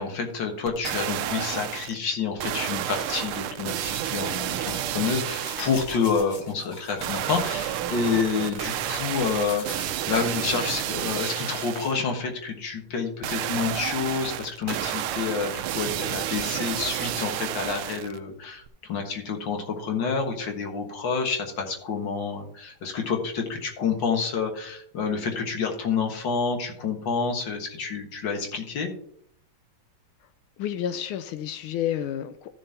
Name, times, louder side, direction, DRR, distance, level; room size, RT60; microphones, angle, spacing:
voice 1, 0.0-28.9, left 5 dB, 60° left, 3 dB, 2.1 m, -28 dB
sound 1, 0.7-2.0 2.4-6.0 7.0-12.0 13.2-18.2 18.7-18.8, right 11 dB, 90° right, 1.5 m, -30 dB
sound 2, 5.3-9.9, left 2 dB, 25° left, 1.3 m, -43 dB
voice 2, 30.6-32.5, left 10 dB, 80° left, 10 dB, 1.4 m, -30 dB
13.5 x 7.0 x 2.8 m, 0.65 s
omnidirectional pair, 2.3 m